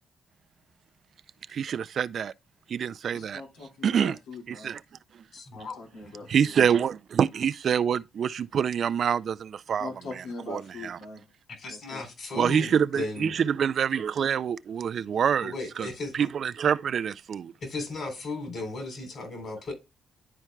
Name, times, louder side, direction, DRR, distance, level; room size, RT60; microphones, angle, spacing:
voice 1, 1.5-2.3 2.7-3.4 3.8-4.2 4.5-4.8 6.3-9.9 10.5-11.0 12.4-15.9 16.1-17.5, right 8 dB, 55° right, 0.3 m, -26 dB
voice 2, 3.1-4.7 5.5-6.6 9.8-11.2 11.7-12.0 12.6-12.7, left 3 dB, 90° left, 2.1 m, -42 dB
voice 3, 5.3-5.8 11.6-13.4 15.4-16.1 17.6-19.7, left 2 dB, 50° left, 3.6 m, -36 dB
11.0 x 4.4 x 2.2 m
cardioid pair, 90°, 0 cm